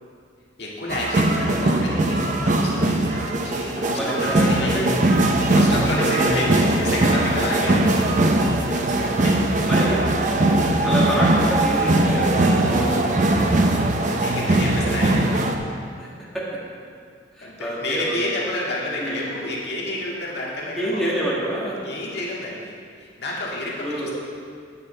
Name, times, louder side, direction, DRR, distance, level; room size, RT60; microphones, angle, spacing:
voice 1, 0.6-5.0 5.5-7.9 9.0-9.4 13.9-15.4 17.4-21.0 21.8-24.1, left 1 dB, 60° left, -5 dB, 2.0 m, -30 dB
sound 1, 0.9-15.6, right 1 dB, 40° right, 0.7 m, -20 dB
voice 2, 4.0-4.9 6.0-6.4 9.7-10.0 10.7-13.6 16.0-16.1 16.3-16.4 17.4-18.2 19.0-19.2 20.8-21.7 23.8-24.1, right 1 dB, ahead, -8 dB, 1.9 m, -27 dB
9.9 x 9.3 x 4.4 m, 2.2 s
head